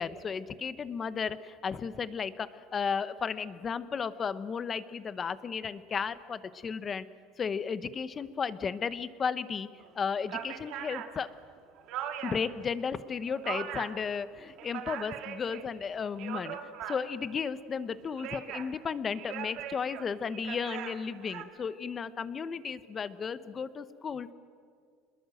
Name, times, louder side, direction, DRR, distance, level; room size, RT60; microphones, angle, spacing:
voice 1, 0.0-7.1 7.4-9.7 9.9-11.3 12.2-16.6 16.9-24.3, left 6 dB, 25° left, 14 dB, 0.9 m, -34 dB
sound 1, 9.8-9.9 10.2-12.6 12.9-14.0 14.4-15.7 16.0-17.3 18.0-18.8 19.1-21.4, right 9 dB, 60° right, 2.2 m, -40 dB
27.0 x 21.0 x 7.8 m, 2.2 s
cardioid pair, 140°, 0 cm